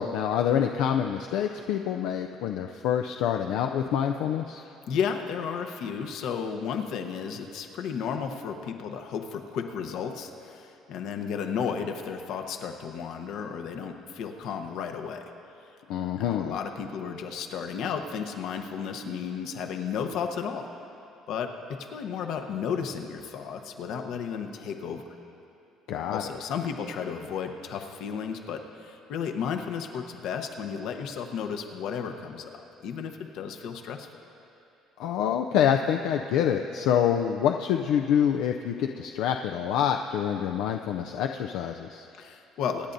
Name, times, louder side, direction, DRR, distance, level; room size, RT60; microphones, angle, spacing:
voice 1, 0.0-4.6 15.9-16.5 25.9-26.3 35.0-42.1, left 9 dB, 80° left, 4 dB, 0.4 m, -26 dB
voice 2, 4.6-15.2 16.1-20.7 21.3-25.0 26.1-34.1 42.1-42.9, left 7 dB, 65° left, 5 dB, 0.9 m, -33 dB
25.5 x 9.8 x 2.7 m, 2.9 s
cardioid pair, 150°, 0 cm